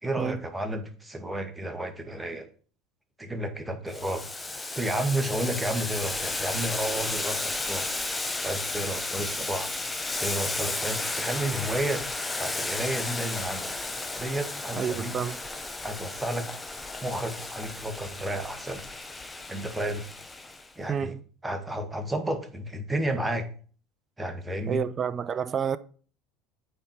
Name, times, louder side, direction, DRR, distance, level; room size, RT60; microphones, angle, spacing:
voice 1, 0.0-2.5 3.2-4.3 4.7-7.9 8.4-9.7 10.2-12.0 12.4-13.8 14.2-15.1 15.8-16.5 17.0-18.8 19.5-20.0 20.8-21.1 21.4-23.5 24.2-24.8, right 1 dB, 10° right, 1.8 m, -31 dB
Boiling, 3.9-20.7, left 2 dB, 15° left, 1.2 m, -33 dB
voice 2, 14.8-15.4 20.9-21.2 24.7-25.8, right 7 dB, 35° right, 0.5 m, -29 dB
8.7 x 4.5 x 5.8 m
hypercardioid pair, 80°, 0 cm